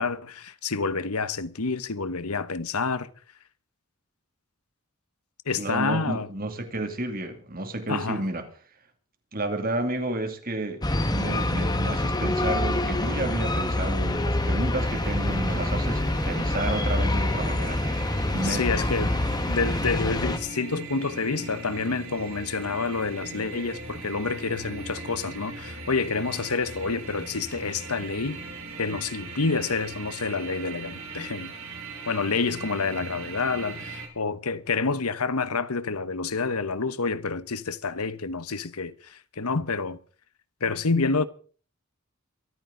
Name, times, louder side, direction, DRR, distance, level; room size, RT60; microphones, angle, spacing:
voice 1, 0.0-3.1 5.5-6.3 7.9-8.2 18.4-19.1 19.5-28.4 28.8-31.5 32.1-40.0 40.6-41.3, left 4 dB, 85° left, 1.1 m, -28 dB
voice 2, 5.5-8.5 9.3-10.8 11.1-17.8 18.3-18.7, right 1 dB, 40° right, 2.6 m, -31 dB
sound 1, 10.8-20.4, left 1 dB, 20° left, 1.5 m, -26 dB
sound 2, 14.8-34.1, right 3 dB, 70° right, 5.7 m, -40 dB
23.5 x 14.0 x 3.9 m
head